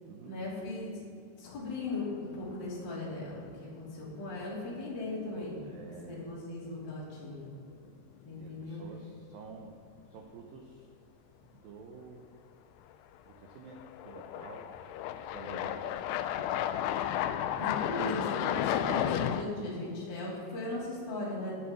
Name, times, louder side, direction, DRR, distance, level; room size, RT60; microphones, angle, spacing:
voice 1, 0.2-1.0 1.4-5.6 6.1-7.5 8.2-8.8 17.6-21.6, left 2 dB, 30° left, -7 dB, 3.1 m, -38 dB
sound 1, 1.5-2.1 2.5-2.6 5.5-5.6 6.9-7.1 7.5-7.6 12.9-13.0 13.8-19.4, left 11 dB, 90° left, 2.3 m, -33 dB
voice 2, 5.6-6.2 8.4-9.8 10.1-10.9 11.4-12.3 13.3-13.8 14.1-14.6 15.3-16.6 17.1-17.4 19.4-19.8, right 5 dB, 85° right, 1 dB, 2.0 m, -50 dB
9.4 x 9.0 x 7.1 m, 2.4 s
omnidirectional pair, 5.3 m